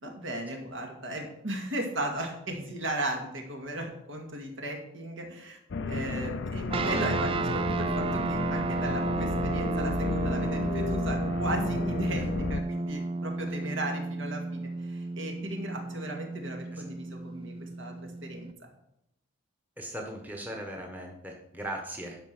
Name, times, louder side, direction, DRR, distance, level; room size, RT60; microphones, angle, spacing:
voice 1, 0.0-5.6 5.8-17.9 18.2-18.7, right 1 dB, 65° right, 2 dB, 2.1 m, -36 dB
sound 1, 5.7-12.6, left 3 dB, 55° left, 0.5 m, -33 dB
sound 2, 6.7-18.5, right 3 dB, 25° right, 0.4 m, -32 dB
voice 2, 19.8-22.2, right 1 dB, 10° right, 1 dB, 1.3 m, -38 dB
11.5 x 5.8 x 6.1 m, 0.81 s
head